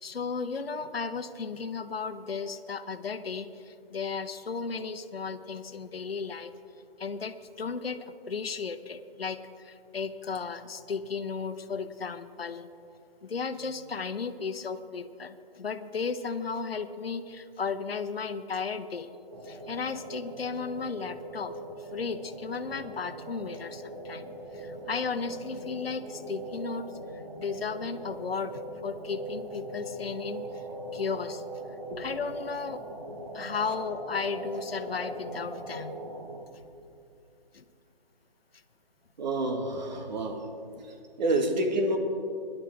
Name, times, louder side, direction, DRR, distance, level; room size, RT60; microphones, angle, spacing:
voice 1, 0.0-6.5 7.0-12.7 13.2-19.1 19.4-21.5 21.9-26.9 27.4-30.5 30.9-31.4 32.0-32.8 33.3-35.9 37.5-37.6, left 5 dB, 85° left, 11 dB, 0.9 m, -35 dB
sound 1, 19.3-36.4, right 1 dB, 25° right, 1.3 m, -41 dB
voice 2, 39.2-40.5 41.2-42.0, right 1 dB, 50° right, 4 dB, 1.8 m, -28 dB
20.5 x 11.0 x 3.6 m, 2.5 s
hypercardioid pair, 155°, 29 cm